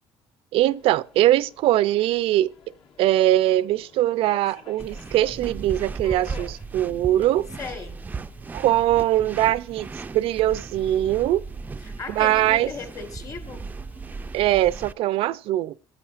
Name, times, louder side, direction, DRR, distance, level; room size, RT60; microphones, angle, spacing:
voice 1, 0.5-2.5 3.0-7.5 8.5-11.4 12.1-12.7 14.3-15.7, right 14 dB, 75° right, 0.5 m, -21 dB
Subway metro underground, 0.6-14.4, left 3 dB, 70° left, 1.8 m, -52 dB
sound 1, 4.8-14.9, right 4 dB, 15° right, 0.4 m, -36 dB
voice 2, 7.6-8.0 11.8-13.7, left 5 dB, 35° left, 1.3 m, -36 dB
15.5 x 9.5 x 2.5 m
cardioid pair, 140°, 10 cm